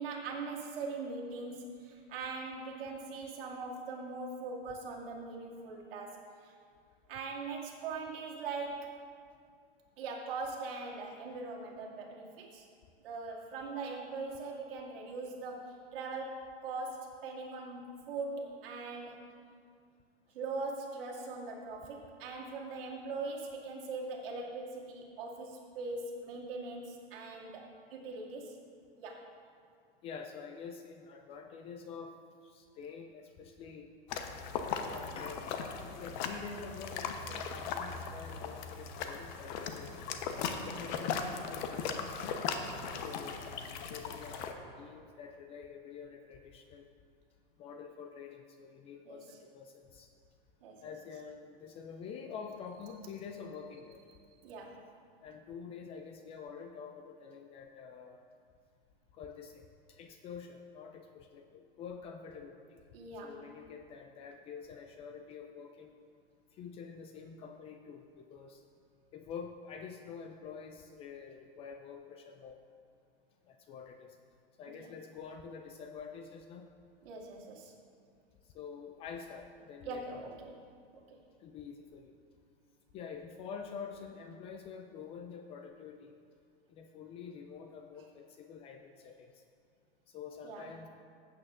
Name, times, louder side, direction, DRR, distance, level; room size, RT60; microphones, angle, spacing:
voice 1, 0.0-6.5 7.1-8.9 10.0-12.6 13.0-19.2 20.3-28.6 29.0-29.3 40.7-40.8 42.8-43.1 49.0-49.2 50.6-50.8 54.4-54.8 62.9-63.4 74.7-74.9 77.0-77.7 79.9-80.5 81.1-81.2 90.4-90.7, right 3 dB, 65° right, -3 dB, 2.4 m, -41 dB
voice 2, 30.0-32.2 32.4-33.9 34.8-40.1 40.6-42.3 42.9-46.9 47.6-50.1 50.8-54.0 55.2-58.2 59.1-62.8 63.1-65.9 66.5-68.6 69.1-72.6 73.5-74.1 74.6-76.7 78.5-80.3 81.4-82.1 82.9-86.2 86.7-89.4 90.1-90.9, left 6 dB, 20° left, 5 dB, 0.3 m, -47 dB
sound 1, 34.1-44.5, left 6 dB, 50° left, 0.9 m, -38 dB
15.5 x 8.6 x 2.5 m, 2.3 s
hypercardioid pair, 130°, 30 cm